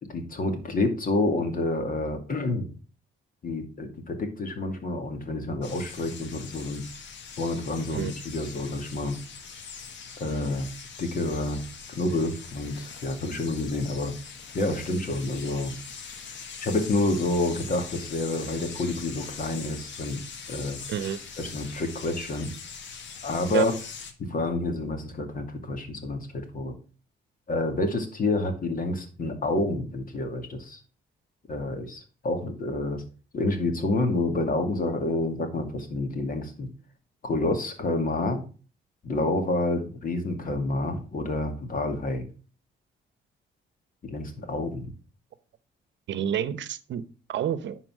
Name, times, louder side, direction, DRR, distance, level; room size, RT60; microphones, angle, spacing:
voice 1, 0.0-2.7 3.4-6.8 7.4-9.2 10.2-10.7 11.0-11.6 11.9-14.1 14.5-15.7 16.6-20.8 21.4-22.5 23.2-23.7 24.2-26.7 27.5-30.8 31.5-33.0 33.3-36.7 37.2-38.5 39.0-42.2 44.0-44.9, left 2 dB, 45° left, 6 dB, 2.4 m, -28 dB
sound 1, 5.6-24.1, left 5 dB, 70° left, 1.7 m, -42 dB
voice 2, 46.1-47.0 47.3-47.8, right 9 dB, 65° right, 15 dB, 0.9 m, -28 dB
10.5 x 4.3 x 6.1 m, 0.37 s
cardioid pair, 90°, 20 cm